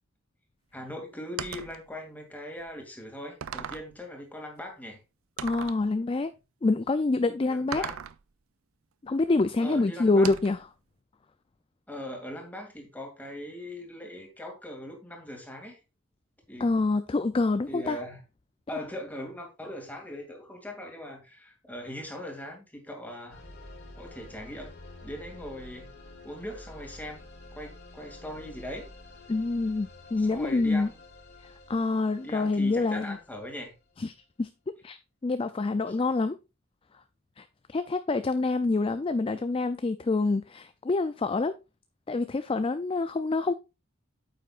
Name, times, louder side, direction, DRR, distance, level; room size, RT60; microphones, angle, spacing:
voice 1, 0.7-5.0 7.4-7.9 9.6-10.3 11.9-15.8 16.5-16.7 17.7-18.2 18.7-23.4 24.0-24.7 25.0-25.9 26.2-27.2 27.5-28.9 30.2-31.0 32.2-33.7 35.9-36.0, left 1 dB, 10° left, 2.4 m, -40 dB
sound 1, 1.4-1.8 2.6-2.7 3.4-3.9 5.4-5.8 7.7-8.2 10.2-10.6, right 8 dB, 80° right, 0.5 m, -37 dB
voice 2, 5.4-6.3 6.6-7.8 9.0-10.6 16.6-18.0 29.3-30.9 31.7-33.2 34.0-34.5 34.8-35.0 35.2-36.4 37.4-41.5 42.1-43.5, left 3 dB, 25° left, 0.4 m, -26 dB
sound 2, 23.3-33.9, left 2 dB, 55° left, 2.4 m, -49 dB
9.0 x 7.8 x 2.4 m
head